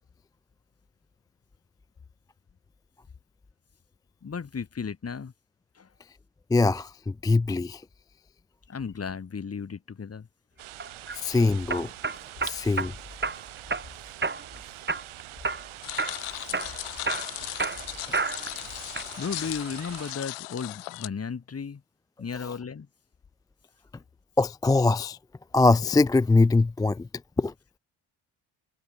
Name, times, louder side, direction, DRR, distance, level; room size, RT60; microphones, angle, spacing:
voice 1, 4.2-5.3 5.7-5.9 8.7-10.3 19.2-21.8 22.2-22.9, left 6 dB, 30° left, 1.5 m, -34 dB
voice 2, 6.5-7.8 11.1-11.9 12.4-12.9 24.4-25.2 25.5-27.1 27.4-27.5, left 3 dB, 10° left, 0.3 m, -22 dB
sound 1, 10.6-20.1, right 14 dB, 75° right, 5.3 m, -44 dB
sound 2, 10.8-11.2 11.7-12.9 13.2-13.9 14.2-14.6 14.9-15.7 16.0-16.2 16.5-18.6 18.9-19.5, right 3 dB, 20° right, 2.6 m, -30 dB
sound 3, 15.8-21.1, left 19 dB, 85° left, 2.7 m, -37 dB
supercardioid pair, 65°, 50 cm